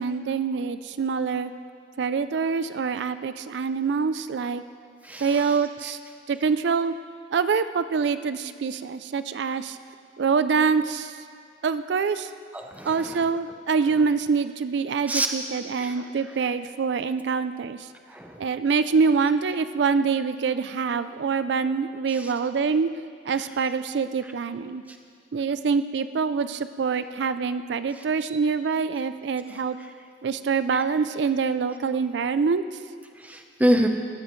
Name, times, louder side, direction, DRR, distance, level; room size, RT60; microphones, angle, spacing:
voice 1, 0.0-1.5 2.0-4.6 5.2-6.0 6.3-6.9 7.3-9.8 10.2-11.2 11.6-12.3 12.8-17.9 18.4-22.9 23.2-24.8 25.3-29.8 30.2-32.6, right 5 dB, 70° right, 12 dB, 0.4 m, -25 dB
voice 2, 5.0-5.6 12.5-13.2 15.1-15.3 15.8-16.1 18.1-18.4 22.1-22.3 24.9-25.0 28.0-28.1 30.7-30.8 33.2-33.9, equal, 10° right, 4 dB, 0.8 m, -27 dB
20.5 x 14.0 x 3.1 m, 2.2 s
head